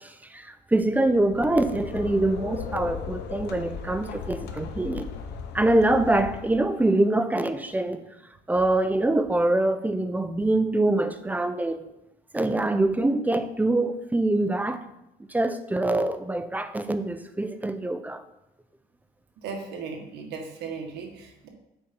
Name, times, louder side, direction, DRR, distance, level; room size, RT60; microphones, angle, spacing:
voice 1, 0.0-5.1 5.5-8.0 8.5-11.8 12.3-14.8 15.3-18.2, right 2 dB, 10° right, 10 dB, 0.5 m, -24 dB
sound 1, 0.9-6.9, left 6 dB, 80° left, 0.9 m, -37 dB
voice 2, 19.4-21.5, right 5 dB, 80° right, 2 dB, 1.6 m, -37 dB
7.7 x 5.2 x 4.5 m, 0.87 s
cardioid pair, 110°, 17 cm